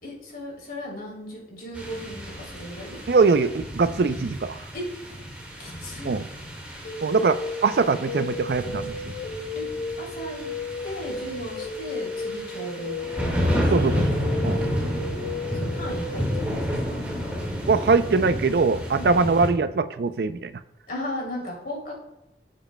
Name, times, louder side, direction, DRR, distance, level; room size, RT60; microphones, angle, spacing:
voice 1, 0.0-3.0 4.7-4.9 5.6-6.1 9.5-9.6 10.0-10.5 10.8-13.6 14.5-16.9 19.0-19.2 20.9-21.9, left 1 dB, 55° left, -3 dB, 3.0 m, -36 dB
sound 1, 1.7-19.5, equal, 10° right, 1.7 m, -31 dB
voice 2, 3.1-4.6 6.0-6.3 7.0-9.1 13.7-14.2 14.4-14.7 17.7-20.5, right 4 dB, 60° right, 12 dB, 0.4 m, -22 dB
sound 2, 6.8-16.4, left 3 dB, 80° left, 2.1 m, -34 dB
14.0 x 7.2 x 2.2 m, 0.90 s
head